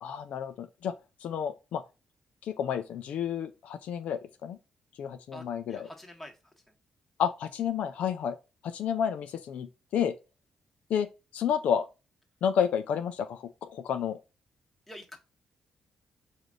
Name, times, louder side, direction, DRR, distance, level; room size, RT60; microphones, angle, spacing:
voice 1, 0.0-0.9 1.2-1.8 2.4-4.6 5.0-5.9 7.2-8.4 8.6-10.1 10.9-11.1 11.3-11.9 12.4-14.2, left 8 dB, 80° left, 0.5 m, -30 dB
voice 2, 5.3-6.3 14.9-15.2, equal, 10° left, 1.4 m, -46 dB
4.9 x 2.6 x 3.7 m
cardioid pair, 85°, 2 cm